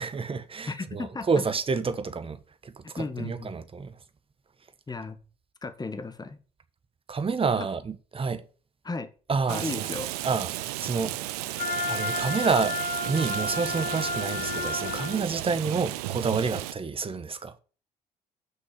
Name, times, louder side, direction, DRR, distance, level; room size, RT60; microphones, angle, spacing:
voice 1, 0.0-2.8 3.2-3.9 7.1-8.4 9.3-9.9 10.2-11.2 11.5-11.6 11.9-12.8 13.0-17.5, right 5 dB, 25° right, 1.3 m, -29 dB
voice 2, 0.7-1.4 2.9-3.5 4.9-5.2 5.6-6.4 7.6-7.7 8.8-9.1 9.5-10.1, left 3 dB, 20° left, 1.4 m, -34 dB
Rain, 9.5-16.7, right 16 dB, 65° right, 0.6 m, -34 dB
Wind instrument woodwind instrument, 11.5-15.3, left 3 dB, 40° left, 3.3 m, -31 dB
8.0 x 6.1 x 7.4 m
figure-of-eight pair, 50°, 21 cm